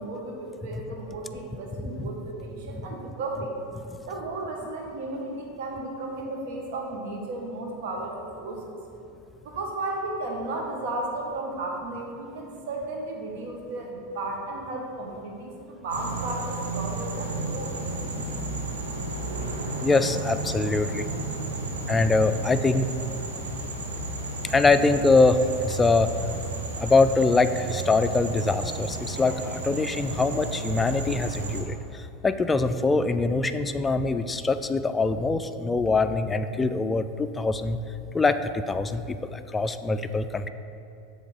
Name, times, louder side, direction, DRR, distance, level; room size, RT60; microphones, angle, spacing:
voice 1, 0.0-3.5 4.1-8.7 9.4-17.8, right 2 dB, 65° right, 0 dB, 1.3 m, -34 dB
sound 1, 15.9-31.6, right 2 dB, 90° right, 1.1 m, -33 dB
voice 2, 19.8-21.1 21.9-22.9 24.4-26.1 26.8-37.8 38.1-40.5, left 3 dB, 15° left, 10 dB, 0.4 m, -23 dB
7.7 x 3.7 x 6.3 m, 2.7 s
hypercardioid pair, 95°, 0 cm